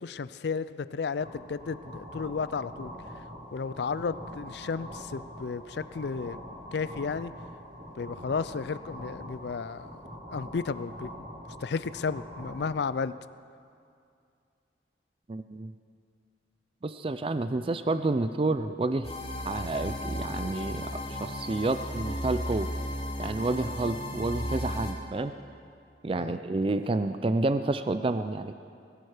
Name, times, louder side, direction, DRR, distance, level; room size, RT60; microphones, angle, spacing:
voice 1, 0.0-3.2 3.5-6.4 6.7-7.3 8.0-10.0 10.3-11.3 11.6-13.1 26.2-26.4, left 5 dB, 60° left, 15 dB, 0.4 m, -33 dB
sound 1, 1.1-12.7, equal, 55° right, 5.2 m, -44 dB
voice 2, 15.3-15.7 16.8-19.1 19.5-22.7 23.2-25.3 26.0-28.5, right 2 dB, 30° right, 10 dB, 0.4 m, -29 dB
sound 2, 19.0-24.9, left 1 dB, 30° left, 2.3 m, -35 dB
21.0 x 12.5 x 4.9 m, 2.4 s
head